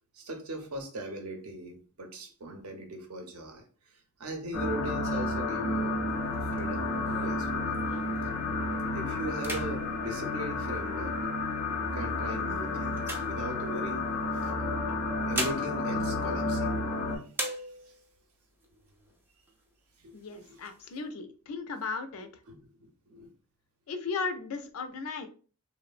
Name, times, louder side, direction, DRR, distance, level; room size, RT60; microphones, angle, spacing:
voice 1, 0.1-3.7 4.2-6.0 6.3-6.9 7.2-7.7 8.9-11.2 11.8-14.1 14.4-14.8 15.3-16.7 17.1-17.2 17.6-17.7 20.0-20.1 22.5-23.3, right 1 dB, 75° right, 5 dB, 0.6 m, -39 dB
sound 1, 4.5-17.2, left 2 dB, 85° left, 0.8 m, -31 dB
sound 2, 6.1-8.3 8.7-9.0 9.3-11.2 11.9-14.0 14.9-17.0 17.3-18.2 18.6-18.7 19.0-19.6 20.1-21.0, right 1 dB, 10° right, 0.3 m, -40 dB
voice 2, 20.1-22.3 23.9-25.3, left 4 dB, 70° left, 8 dB, 0.4 m, -36 dB
3.0 x 2.1 x 2.4 m, 0.39 s
head